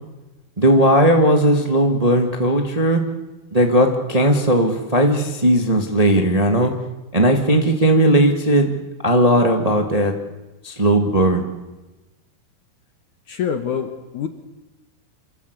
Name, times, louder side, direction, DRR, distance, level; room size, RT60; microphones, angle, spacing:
voice 1, 0.6-3.0 3.5-6.7 7.1-8.7 9.0-10.1 10.6-11.5, right 1 dB, 35° right, 3 dB, 0.5 m, -17 dB
voice 2, 13.3-14.3, left 7 dB, 60° left, 7 dB, 2.4 m, -25 dB
27.5 x 25.5 x 8.3 m, 1.1 s
omnidirectional pair, 4.5 m